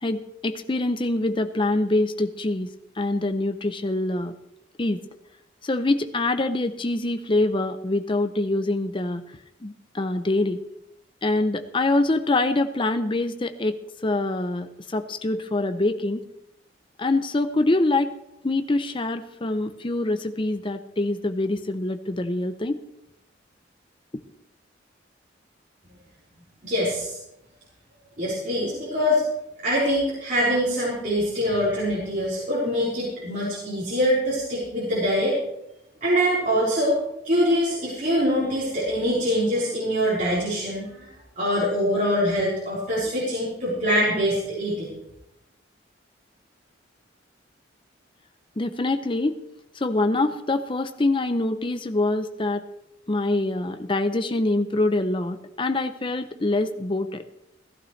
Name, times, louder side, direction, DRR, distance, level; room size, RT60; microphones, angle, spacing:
voice 1, 0.0-2.7 3.0-4.3 4.8-5.0 5.6-9.2 9.6-10.6 11.2-16.2 17.0-18.1 18.4-22.8 48.6-49.4 49.8-52.6 53.1-57.2, left 2 dB, 25° left, 9 dB, 0.6 m, -25 dB
voice 2, 26.6-27.1 28.2-29.2 29.6-35.4 36.0-37.0 37.2-44.9, equal, 40° right, -8 dB, 4.1 m, -24 dB
16.0 x 14.5 x 3.2 m, 0.81 s
head